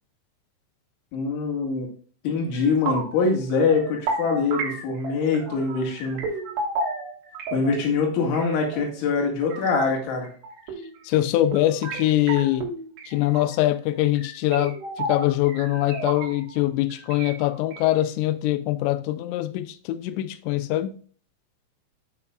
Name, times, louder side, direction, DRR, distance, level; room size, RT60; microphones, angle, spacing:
voice 1, 1.1-1.9 2.2-6.2 7.5-10.3, left 4 dB, 70° left, 4.3 m, -24 dB
sound 1, 2.5-3.2 3.5-7.8 8.2-10.0 10.2-11.0 11.5-13.6 14.2-16.6 16.9-17.8, right 3 dB, 85° right, 4.4 m, -33 dB
voice 2, 11.1-12.7 13.1-21.0, left 15 dB, 90° left, 2.5 m, -23 dB
12.0 x 6.1 x 2.4 m
omnidirectional pair, 5.7 m